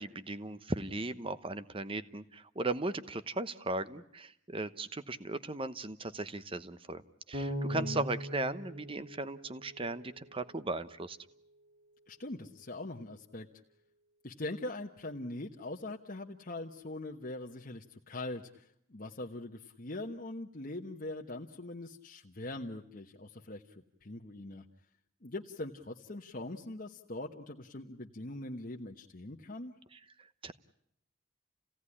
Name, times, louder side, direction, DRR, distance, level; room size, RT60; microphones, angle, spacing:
voice 1, 0.0-11.2 29.9-30.5, right 2 dB, 30° right, 13 dB, 1.0 m, -37 dB
Bass guitar, 7.3-10.3, equal, 50° right, 5.0 m, -40 dB
voice 2, 7.7-8.1 12.1-13.5 14.2-24.6 25.2-29.7, left 2 dB, 45° left, 1 dB, 1.2 m, -42 dB
30.0 x 17.0 x 9.9 m, 0.71 s
head